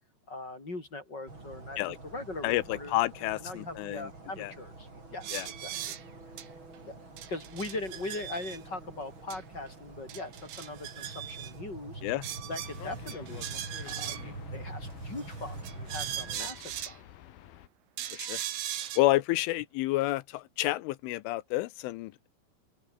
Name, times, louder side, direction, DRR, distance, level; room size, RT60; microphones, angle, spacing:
voice 1, 0.3-3.0 3.4-6.0 6.9-7.0 7.3-12.0 12.4-13.5 13.8-17.1, left 2 dB, 20° left, 5.8 m, -41 dB
sound 1, 1.3-16.4, right 3 dB, 25° right, 6.7 m, -46 dB
voice 2, 2.4-4.1 4.4-4.5 5.3-5.5 12.0-12.2 16.4-16.5 18.1-18.4 19.0-22.3, left 18 dB, 85° left, 3.3 m, -29 dB
sound 2, 5.2-6.0 6.4-6.5 6.7-6.8 7.2-8.6 9.3-9.4 9.7-9.8 10.1-11.5 12.2-14.4 15.2-17.0 18.0-19.0, right 11 dB, 80° right, 4.9 m, -39 dB
sound 3, 12.6-17.7, left 13 dB, 65° left, 2.6 m, -50 dB
open air
omnidirectional pair, 5.7 m